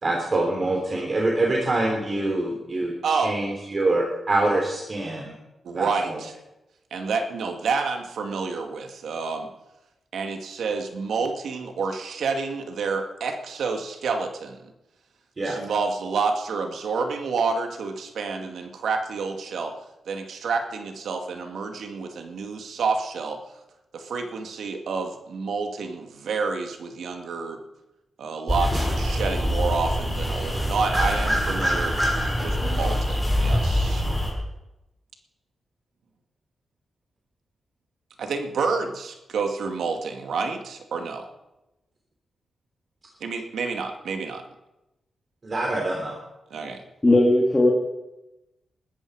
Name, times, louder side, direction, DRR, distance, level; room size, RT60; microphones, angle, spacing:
voice 1, 0.0-5.3 5.7-6.2 15.4-15.6 45.4-46.2, right 2 dB, 35° right, 0 dB, 3.2 m, -25 dB
voice 2, 3.0-3.4 5.6-6.3 6.9-9.5 10.1-14.6 15.4-19.8 20.1-23.4 23.9-27.6 28.2-32.0 32.4-34.0 38.2-41.3 43.2-44.4 46.5-46.8, right 4 dB, 85° right, 4 dB, 2.2 m, -29 dB
sound 1, 28.5-34.3, equal, 5° right, 5.8 m, -24 dB
voice 3, 47.0-47.7, left 1 dB, 20° left, -4 dB, 3.1 m, -17 dB
20.5 x 13.5 x 4.9 m, 0.95 s
wide cardioid pair, 115°, 0 cm